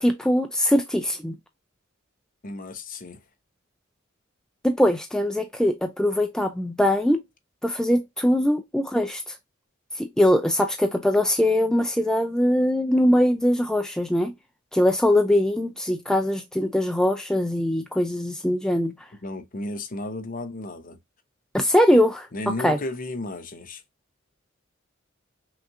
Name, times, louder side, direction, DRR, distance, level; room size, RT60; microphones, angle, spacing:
voice 1, 0.0-1.3 4.6-7.2 7.6-9.3 10.0-14.3 14.7-18.9 21.5-22.3 22.6-22.8, left 1 dB, 5° left, 0.3 m, -22 dB
voice 2, 2.4-3.2 19.2-21.0 22.3-23.8, left 2 dB, 45° left, 0.7 m, -33 dB
5.8 x 2.4 x 2.6 m
head